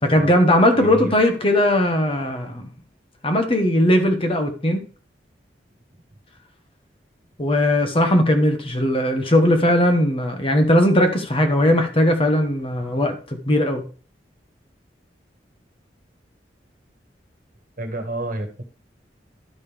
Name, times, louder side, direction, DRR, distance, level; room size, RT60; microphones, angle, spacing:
voice 1, 0.0-2.7 3.2-4.8 7.4-13.8, left 1 dB, 30° left, 5 dB, 1.2 m, -18 dB
voice 2, 0.8-1.2 17.8-18.5, right 1 dB, 50° right, 6 dB, 1.6 m, -29 dB
12.0 x 5.3 x 3.4 m, 0.38 s
head